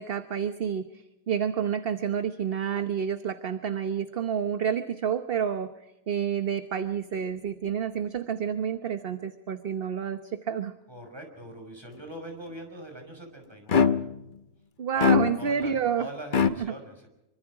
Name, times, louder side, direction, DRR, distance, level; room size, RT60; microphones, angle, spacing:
voice 1, 0.0-10.7 14.8-16.1 16.6-16.7, right 8 dB, 45° right, 9 dB, 1.1 m, -29 dB
voice 2, 10.9-14.0 14.9-17.1, right 1 dB, 15° right, 4 dB, 5.6 m, -42 dB
sound 1, 13.7-14.3 15.0-15.7 16.3-16.5, left 6 dB, 40° left, 0.9 m, -22 dB
25.5 x 25.0 x 4.9 m, 0.93 s
omnidirectional pair, 1.5 m